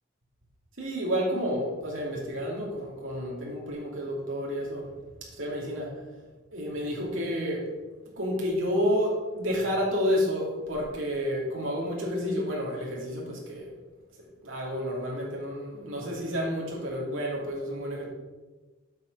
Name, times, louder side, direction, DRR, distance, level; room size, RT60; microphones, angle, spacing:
voice 1, 0.8-4.9 5.3-5.9 6.5-7.6 8.2-13.7 14.4-18.0, equal, 80° right, -3 dB, 2.8 m, -30 dB
8.6 x 6.4 x 5.7 m, 1.2 s
head